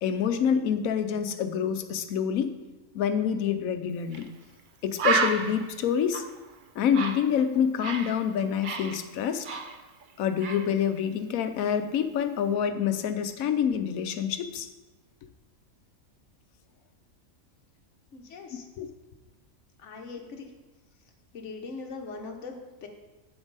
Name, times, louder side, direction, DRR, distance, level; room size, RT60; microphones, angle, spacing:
voice 1, 0.0-2.5 2.9-4.3 4.8-6.2 6.8-9.5 10.2-14.7 18.8-18.9, left 8 dB, 80° left, 9 dB, 1.1 m, -27 dB
Bird, 4.1-4.3 4.6-4.7 5.0-8.2 8.4-10.1 10.4-10.7, right 4 dB, 55° right, 0.6 m, -31 dB
voice 2, 18.1-18.7 19.8-20.5 21.3-22.9, left 4 dB, 60° left, 3 dB, 1.3 m, -40 dB
8.0 x 7.1 x 4.0 m, 1.1 s
omnidirectional pair, 1.5 m